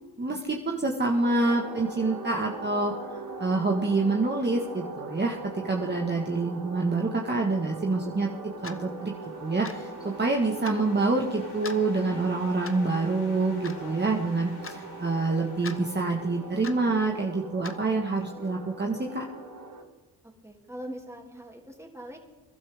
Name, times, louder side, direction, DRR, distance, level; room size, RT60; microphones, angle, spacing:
voice 1, 0.2-2.9 3.4-9.1 9.4-19.2, right 3 dB, 25° right, 0 dB, 1.7 m, -27 dB
sound 1, 1.2-19.8, right 3 dB, 55° right, 2.1 m, -41 dB
sound 2, 8.6-17.2, left 3 dB, 70° left, 3.8 m, -50 dB
Clock, 8.6-8.8 9.6-9.9 10.6-10.8 11.6-11.8 12.6-12.9 13.6-13.8 14.6-14.8 15.6-15.8 16.6-16.8 17.6-17.8, left 4 dB, 35° left, 1.2 m, -40 dB
voice 2, 20.2-22.2, equal, 5° right, 1 dB, 3.0 m, -42 dB
22.0 x 12.0 x 3.7 m, 1.2 s
cardioid pair, 65°, 40 cm